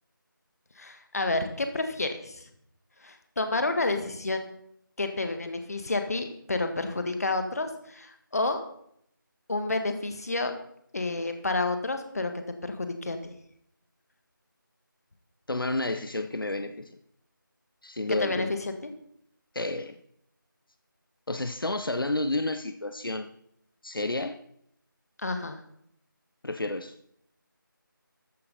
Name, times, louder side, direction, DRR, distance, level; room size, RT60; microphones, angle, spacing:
voice 1, 0.8-2.4 3.0-4.5 5.0-8.7 9.5-10.6 10.9-12.3 12.6-13.3 18.2-18.5 25.2-25.6, left 2 dB, 45° left, 7 dB, 1.7 m, -30 dB
voice 2, 15.5-16.9 17.8-18.6 19.5-20.0 21.3-23.3 23.8-24.4 26.4-26.9, left 2 dB, 80° left, 9 dB, 1.0 m, -30 dB
14.0 x 9.6 x 4.1 m, 0.71 s
figure-of-eight pair, 170°, 11 cm